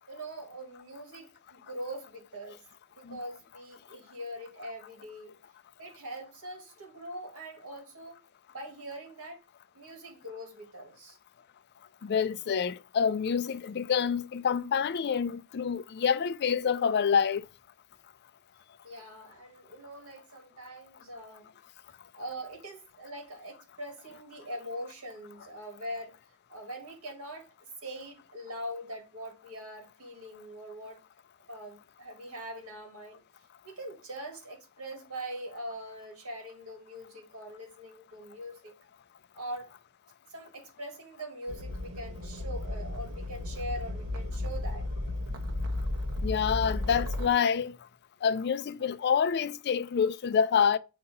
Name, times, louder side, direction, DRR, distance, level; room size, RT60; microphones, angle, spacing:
voice 1, 0.1-2.6 3.0-5.4 5.8-8.2 8.5-9.4 9.7-11.2 18.8-21.5 22.1-26.2 26.5-31.0 31.5-33.2 33.6-38.8 39.3-39.7 40.3-44.9, right 1 dB, 90° right, 2.2 m, -42 dB
voice 2, 12.0-17.4 46.2-47.8 48.2-50.8, left 7 dB, 50° left, 0.4 m, -27 dB
sound 1, 41.5-47.3, left 2 dB, 70° right, 1.2 m, -34 dB
6.7 x 2.8 x 5.3 m
head